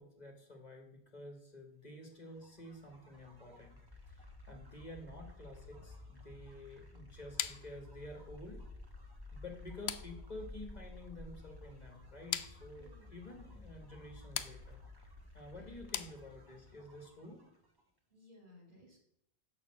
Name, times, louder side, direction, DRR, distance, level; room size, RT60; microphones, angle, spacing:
voice 1, 0.0-3.8 4.1-8.6 9.3-14.8 15.3-17.4, left 1 dB, 40° left, 3 dB, 1.4 m, -50 dB
sound 1, 2.1-17.8, left 2 dB, 20° right, 1.5 m, -53 dB
sound 2, 7.4-16.7, left 10 dB, 80° left, 0.8 m, -45 dB
voice 2, 12.8-13.2 15.5-15.9 18.1-19.0, equal, 50° right, 0 dB, 2.5 m, -60 dB
6.8 x 5.3 x 7.1 m, 0.74 s
omnidirectional pair, 1.1 m